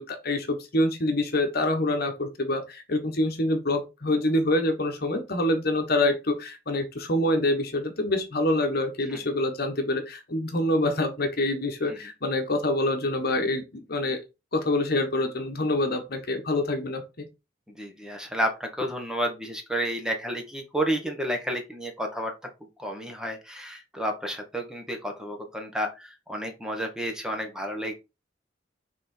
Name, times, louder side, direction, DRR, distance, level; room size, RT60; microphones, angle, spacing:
voice 1, 0.0-14.2 14.5-17.2, left 1 dB, 55° left, 1.3 m, -26 dB
voice 2, 17.7-22.3 22.8-27.9, equal, 5° right, 1.2 m, -31 dB
5.9 x 3.7 x 4.4 m
head